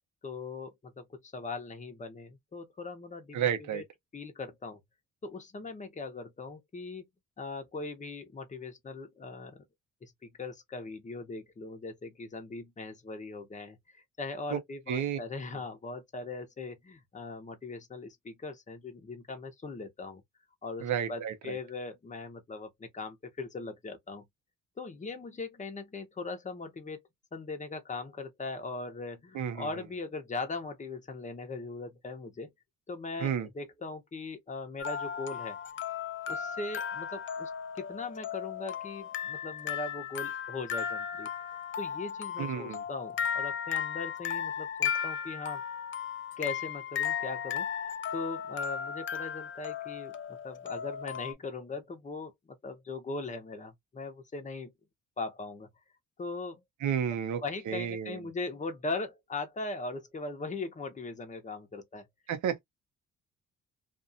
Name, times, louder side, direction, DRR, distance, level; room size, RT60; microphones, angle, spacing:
voice 1, 0.2-3.8 4.1-4.8 5.2-7.1 7.4-9.6 10.0-20.2 20.6-24.2 24.8-27.0 27.3-32.5 32.9-35.6 36.3-41.3 41.8-45.6 46.4-50.2 50.4-54.7 55.2-55.7 56.2-56.6 57.4-62.1, left 3 dB, 25° left, 0.9 m, -40 dB
voice 2, 3.3-3.8 14.5-14.6 14.9-15.2 20.8-21.6 29.3-29.7 33.2-33.5 42.4-42.8 56.8-58.2 62.3-62.6, right 8 dB, 70° right, 0.9 m, -31 dB
sound 1, 34.8-51.3, left 8 dB, 40° left, 0.5 m, -35 dB
2.6 x 2.4 x 2.7 m
cardioid pair, 90°, 30 cm